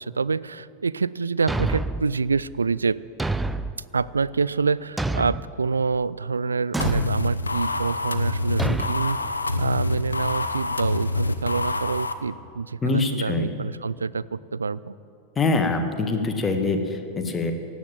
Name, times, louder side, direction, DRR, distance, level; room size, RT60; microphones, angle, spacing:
voice 1, 0.0-3.0 3.9-9.2 9.6-14.9, right 4 dB, 75° right, 19 dB, 0.3 m, -26 dB
Thump thud, 1.5-2.1 3.2-3.8 5.0-5.5 6.7-7.2 8.6-8.9, right 2 dB, 5° right, 0.5 m, -27 dB
sound 1, 6.8-12.1, left 2 dB, 80° left, 0.7 m, -26 dB
voice 2, 12.8-13.5 15.4-17.5, left 3 dB, 20° left, 5 dB, 1.6 m, -24 dB
16.5 x 8.9 x 9.0 m, 2.5 s
figure-of-eight pair, 90°, 0 cm